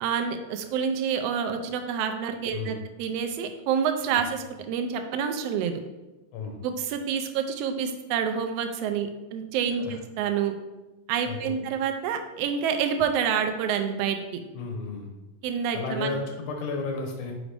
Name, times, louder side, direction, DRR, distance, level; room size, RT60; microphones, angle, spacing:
voice 1, 0.0-5.7 6.6-10.5 11.1-14.4 15.4-16.2, right 7 dB, 85° right, 6 dB, 1.4 m, -28 dB
voice 2, 14.5-15.1 15.6-17.3, left 3 dB, 80° left, 2 dB, 2.4 m, -33 dB
6.1 x 5.0 x 3.3 m, 1.1 s
omnidirectional pair, 3.4 m